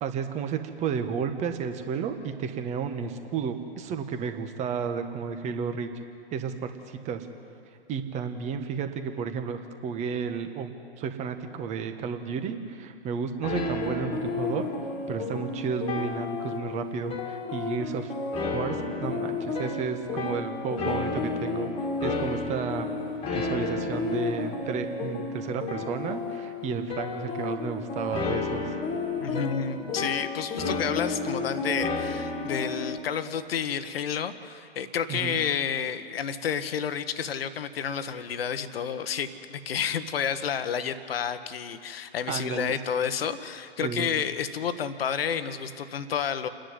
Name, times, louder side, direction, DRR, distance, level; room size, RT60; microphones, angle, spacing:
voice 1, 0.0-5.9 6.3-7.3 7.9-14.6 15.1-18.1 18.5-21.7 22.0-22.9 23.3-28.6 35.1-35.4 42.3-42.8 43.8-44.1, right 6 dB, 20° right, 8 dB, 1.3 m, -32 dB
sound 1, 13.4-33.0, left 3 dB, 15° left, 2.0 m, -31 dB
voice 2, 29.2-46.5, left 7 dB, 65° left, 11 dB, 1.3 m, -30 dB
28.5 x 10.5 x 9.7 m, 2.5 s
hypercardioid pair, 125°, 32 cm